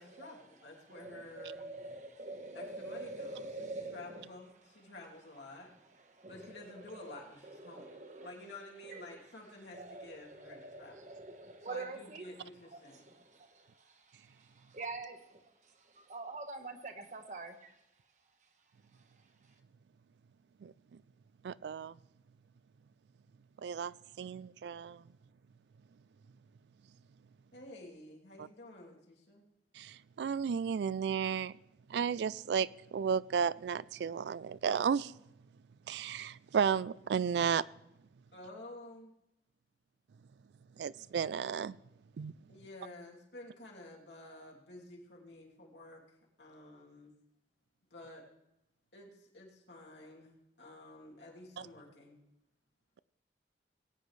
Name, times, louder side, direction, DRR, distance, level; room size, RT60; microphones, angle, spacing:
voice 1, 0.0-1.6 2.5-5.7 6.3-7.9 8.2-11.2 11.6-13.1 27.5-29.4 38.3-39.1 42.5-47.1 47.9-48.2 48.9-50.3 50.6-52.2, left 2 dB, 90° left, 2.9 m, -51 dB
voice 2, 0.9-4.3 5.8-8.3 8.8-9.2 9.7-12.3 12.7-17.8, right 3 dB, 45° right, 1.3 m, -46 dB
voice 3, 21.4-22.0 23.6-25.0 28.4-28.5 29.8-31.5 31.9-35.1 35.9-37.6 40.8-41.8 42.2-42.3 51.6-51.7, right 7 dB, 75° right, 0.3 m, -33 dB
20.0 x 9.4 x 3.2 m
head